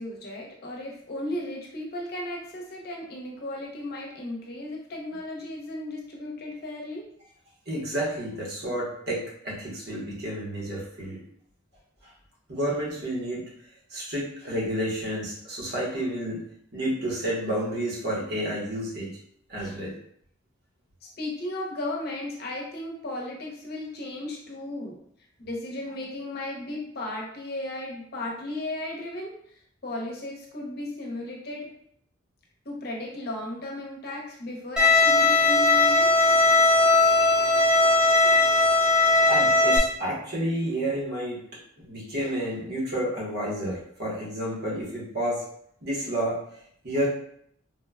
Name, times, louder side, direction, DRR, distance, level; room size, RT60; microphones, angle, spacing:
voice 1, 0.0-7.0 21.2-25.0 25.4-29.4 29.8-31.7 32.6-36.1, left 1 dB, 55° left, -2 dB, 0.8 m, -35 dB
voice 2, 7.7-11.2 12.5-13.4 13.9-16.4 16.7-19.1 19.5-19.9 39.3-41.4 41.8-45.4 45.8-46.4 46.8-47.1, right 1 dB, 55° right, -5 dB, 1.1 m, -30 dB
Bowed string instrument, 34.8-39.8, left 3 dB, 5° right, 0.5 m, -19 dB
3.7 x 2.3 x 2.2 m, 0.67 s
head